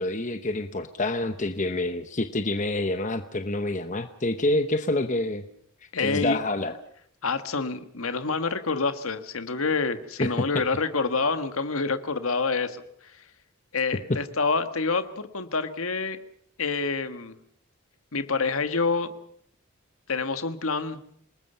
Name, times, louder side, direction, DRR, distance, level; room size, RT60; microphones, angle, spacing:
voice 1, 0.0-5.4 6.0-6.7 10.2-10.3, left 2 dB, 35° left, 8 dB, 0.9 m, -27 dB
voice 2, 5.9-6.4 7.2-13.2 13.7-16.2 16.6-17.4 18.1-19.1 20.1-21.0, left 4 dB, 75° left, 10 dB, 1.6 m, -27 dB
28.0 x 20.0 x 5.6 m, 0.64 s
head